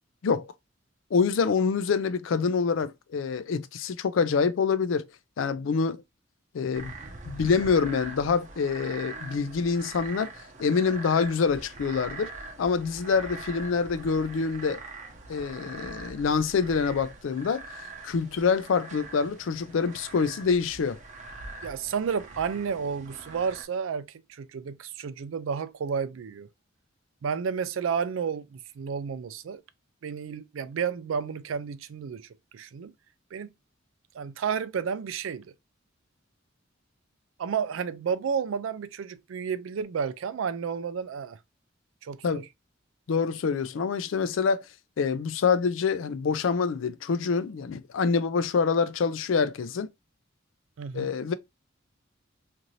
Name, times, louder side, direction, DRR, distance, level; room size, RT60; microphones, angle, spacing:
voice 1, 1.1-5.1 5.4-6.0 6.5-6.9 7.3-10.3 10.6-12.3 12.6-14.8 15.3-17.6 18.0-21.0 42.2-42.4 43.1-44.6 45.0-49.9 50.9-51.3, left 5 dB, 75° left, 0.4 m, -26 dB
sound 1, 6.7-23.6, right 3 dB, 40° right, 0.7 m, -43 dB
voice 2, 21.6-26.5 27.2-29.6 30.0-32.3 32.5-32.9 33.3-33.5 34.1-35.5 37.4-41.4 42.0-42.4 50.8-51.1, right 6 dB, 85° right, 0.4 m, -31 dB
2.6 x 2.6 x 3.0 m
head